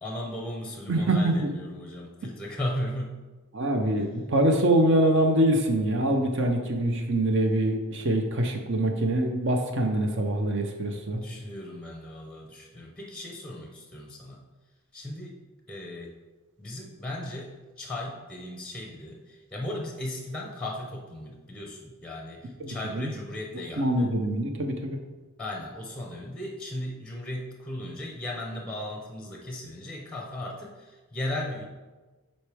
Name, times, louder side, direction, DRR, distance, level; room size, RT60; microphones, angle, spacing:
voice 1, 0.0-3.2 11.1-14.4 14.9-15.4 15.7-16.1 16.6-24.1 25.4-31.6, left 1 dB, 5° left, 0 dB, 0.7 m, -36 dB
voice 2, 0.9-1.5 3.5-11.2 22.6-23.1 23.8-25.0, right 1 dB, 55° right, 4 dB, 0.7 m, -24 dB
7.7 x 4.3 x 3.4 m, 1.3 s
head